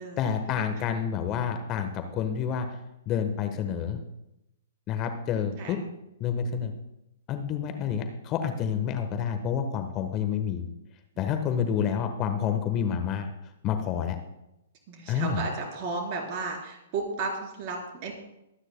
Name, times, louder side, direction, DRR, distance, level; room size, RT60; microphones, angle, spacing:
voice 1, 0.2-2.7 3.1-4.0 4.9-5.8 6.2-6.7 7.3-10.6 11.2-13.3 13.6-14.2 15.1-15.4, left 8 dB, 30° left, 7 dB, 1.2 m, -28 dB
voice 2, 14.9-18.1, right 3 dB, 40° right, 1 dB, 3.9 m, -34 dB
22.5 x 9.8 x 2.2 m, 0.87 s
hypercardioid pair, 120°, 0 cm